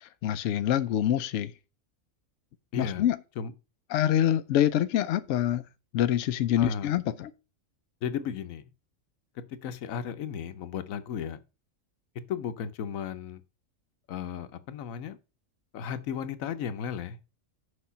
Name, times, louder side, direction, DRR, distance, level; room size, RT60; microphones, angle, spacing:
voice 1, 0.0-1.5 2.8-3.2 3.9-5.6 5.9-7.3, left 11 dB, 70° left, 0.8 m, -25 dB
voice 2, 2.7-3.1 3.4-3.5 6.6-6.9 8.0-8.6 9.6-11.4 12.3-13.4 14.1-15.2 15.7-17.2, left 7 dB, 90° left, 1.1 m, -34 dB
6.6 x 5.1 x 5.5 m
omnidirectional pair, 1.4 m